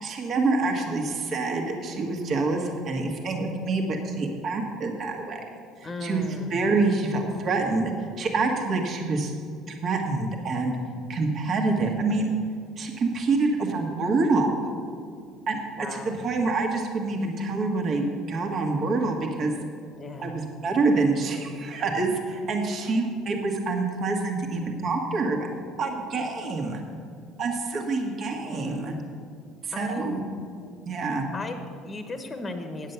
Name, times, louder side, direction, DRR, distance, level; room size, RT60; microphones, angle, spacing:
voice 1, 0.0-5.4 5.8-7.9 8.2-9.3 9.7-10.8 11.1-12.3 12.8-14.5 15.5-19.5 20.2-25.4 25.8-26.8 27.4-28.9 29.6-30.2 30.9-31.3, right 3 dB, 45° right, 2 dB, 1.6 m, -26 dB
voice 2, 5.8-6.6 15.8-16.2 20.0-20.4 22.8-22.9 28.4-29.1 29.7-30.2 31.3-32.9, left 2 dB, 25° left, 6 dB, 1.1 m, -36 dB
9.3 x 7.4 x 6.9 m, 2.3 s
supercardioid pair, 105°, 0 cm